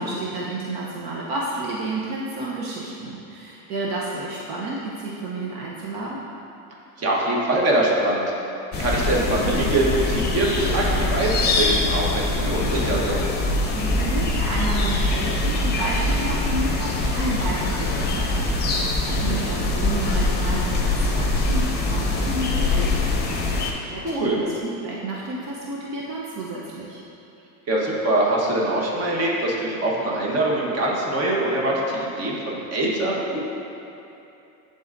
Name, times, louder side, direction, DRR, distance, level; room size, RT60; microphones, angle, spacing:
voice 1, 0.0-6.2 13.7-27.0, right 2 dB, 60° right, -4 dB, 0.9 m, -31 dB
voice 2, 7.0-8.2 8.8-13.2 19.2-19.7 24.0-24.4 27.7-33.4, right 1 dB, 35° right, -3 dB, 1.3 m, -23 dB
sound 1, 8.7-23.7, left 2 dB, 25° left, 0.8 m, -23 dB
10.5 x 4.0 x 2.6 m, 2.8 s
supercardioid pair, 120°, 43 cm